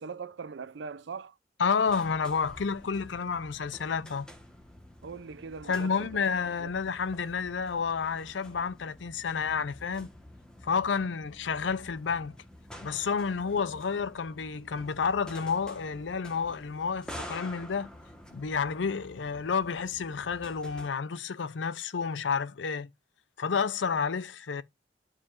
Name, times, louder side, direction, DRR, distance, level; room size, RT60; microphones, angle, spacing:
voice 1, 0.0-1.3 5.0-6.2 6.6-6.7, right 5 dB, 80° right, 0.5 m, -41 dB
voice 2, 1.6-4.3 5.7-10.1 10.6-12.3 12.8-17.9 18.3-22.9 23.4-24.6, left 5 dB, 90° left, 0.6 m, -30 dB
sound 1, 1.8-20.9, left 1 dB, 5° left, 1.3 m, -49 dB
11.5 x 4.9 x 2.5 m
head